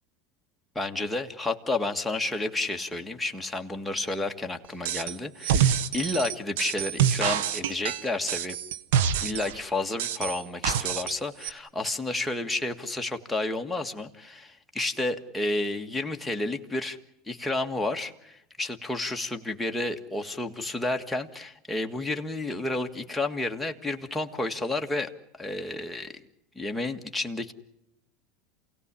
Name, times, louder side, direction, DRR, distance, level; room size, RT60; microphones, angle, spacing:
voice 1, 0.8-8.6 9.2-17.0 17.3-25.1 25.4-26.2 26.6-27.5, left 2 dB, 5° left, 2 dB, 1.8 m, -31 dB
sound 1, 4.8-5.1 5.4-9.6 10.0-11.1 11.4-11.5, right 9 dB, 80° right, 1.2 m, -26 dB
28.0 x 17.5 x 10.0 m, 0.84 s
supercardioid pair, 125°, 0 cm